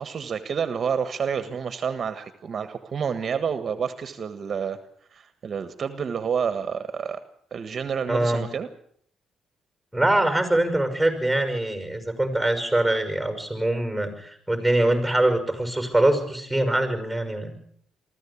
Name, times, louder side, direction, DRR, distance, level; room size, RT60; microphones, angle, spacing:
voice 1, 0.0-4.8 5.1-7.2 7.5-8.7, right 6 dB, 50° right, 11 dB, 1.5 m, -29 dB
voice 2, 8.1-8.4 9.9-17.5, right 1 dB, ahead, 7 dB, 5.9 m, -23 dB
23.0 x 14.5 x 8.6 m, 0.64 s
cardioid pair, 90°, 0 cm